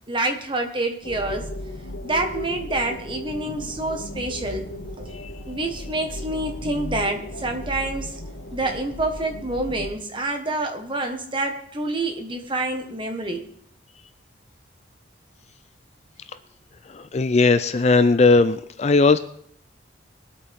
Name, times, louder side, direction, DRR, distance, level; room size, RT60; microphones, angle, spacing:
voice 1, 0.1-1.5 2.0-4.7 5.0-5.2 5.5-8.2 8.5-13.4, right 2 dB, 25° right, 4 dB, 1.4 m, -27 dB
sound 1, 1.0-9.9, left 1 dB, 80° left, 1.8 m, -36 dB
voice 2, 16.9-19.2, left 3 dB, 35° left, 12 dB, 0.4 m, -18 dB
22.0 x 8.4 x 3.6 m, 0.64 s
head